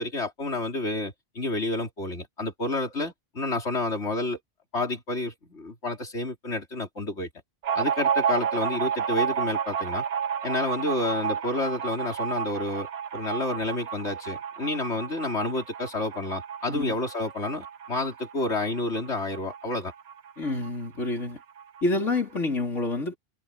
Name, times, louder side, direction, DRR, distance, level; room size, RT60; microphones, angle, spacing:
voice 1, 0.0-4.4 4.7-7.3 7.7-10.0 10.4-19.9, left 2 dB, 65° left, 4.6 m, -30 dB
sound 1, 7.6-20.8 21.0-21.1 21.4-22.2, right 8 dB, 60° right, 1.0 m, -31 dB
voice 2, 20.4-21.4 21.8-23.2, left 2 dB, 80° left, 4.4 m, -28 dB
omnidirectional pair, 1.2 m